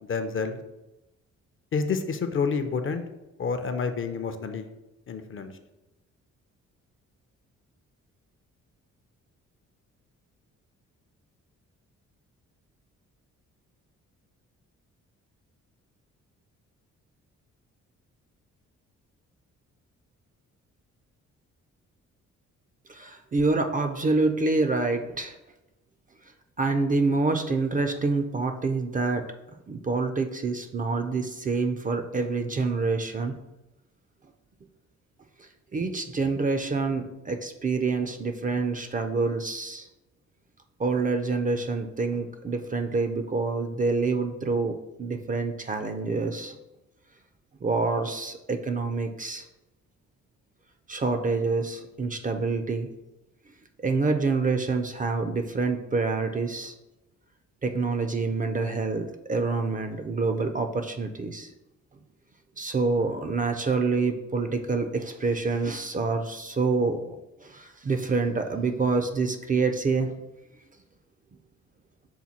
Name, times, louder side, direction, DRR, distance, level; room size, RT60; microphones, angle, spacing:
voice 1, 0.0-0.6 1.7-3.0 3.4-4.7 5.1-5.5, left 5 dB, 40° left, 8 dB, 0.5 m, -29 dB
voice 2, 22.9-25.4 26.6-29.2 29.7-33.4 35.4-39.9 40.8-46.6 47.6-49.5 50.9-52.9 53.8-56.7 57.6-61.5 62.6-70.2, right 3 dB, 25° right, 7 dB, 0.4 m, -27 dB
5.7 x 2.2 x 4.2 m, 0.97 s
cardioid pair, 70°, 31 cm